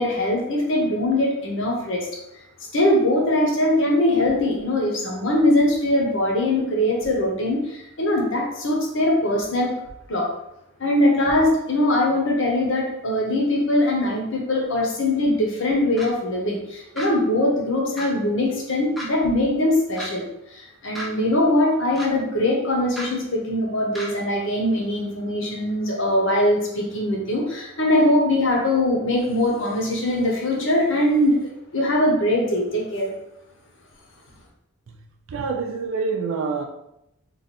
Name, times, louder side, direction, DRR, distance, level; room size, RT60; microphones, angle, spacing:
voice 1, 0.0-2.1 2.7-9.7 10.1-10.3 10.8-20.2 20.5-33.1, left 1 dB, 60° left, -1 dB, 0.9 m, -21 dB
sound 1, 16.0-16.1 16.9-17.1 18.0-18.1 18.9-19.1 19.9-20.1 20.9-21.1 21.9-22.1 22.9-23.1 23.9-24.1, equal, ahead, 0.5 m, -33 dB
voice 2, 35.3-36.7, right 4 dB, 70° right, 2 dB, 0.4 m, -26 dB
3.2 x 2.6 x 4.1 m, 0.83 s
head